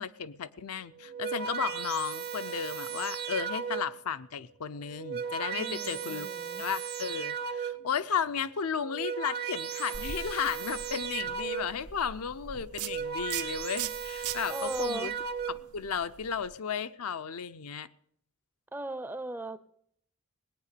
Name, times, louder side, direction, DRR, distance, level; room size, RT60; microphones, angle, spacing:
voice 1, 0.0-6.3 6.6-15.1 15.5-17.9, left 7 dB, 75° left, 11 dB, 0.6 m, -34 dB
sound 1, 0.9-4.1 4.8-8.0 8.7-11.9 12.6-15.8, right 7 dB, 45° right, 0.8 m, -36 dB
voice 2, 5.5-6.6 14.5-15.1 18.7-19.6, right 1 dB, 10° right, 15 dB, 0.5 m, -37 dB
sound 2, 9.9-16.6, right 8 dB, 85° right, 1.2 m, -42 dB
19.0 x 9.1 x 6.7 m, 0.66 s
head